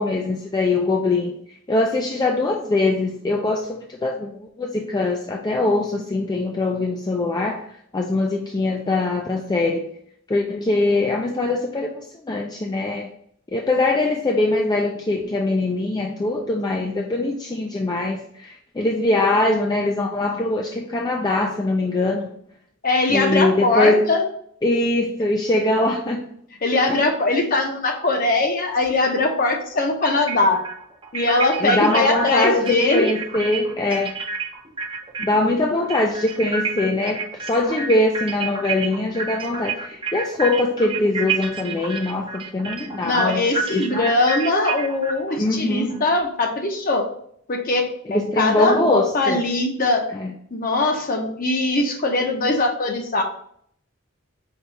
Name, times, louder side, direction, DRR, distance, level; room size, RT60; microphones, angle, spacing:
voice 1, 0.0-1.4 1.7-7.6 7.9-9.9 10.3-13.1 13.5-22.3 23.1-24.0 24.6-26.3 26.9-27.1 31.6-34.1 35.2-44.0 45.4-46.0 48.1-49.4 50.2-50.3, left 2 dB, 20° left, 1 dB, 0.3 m, -22 dB
voice 2, 22.8-24.2 26.6-30.6 31.1-33.1 43.0-47.1 47.5-50.1 50.5-53.2, left 2 dB, 40° left, 3 dB, 0.8 m, -21 dB
sound 1, 28.8-28.9 30.0-35.5 35.8-46.0, right 4 dB, 25° right, 0.6 m, -29 dB
5.3 x 2.3 x 4.0 m, 0.66 s
head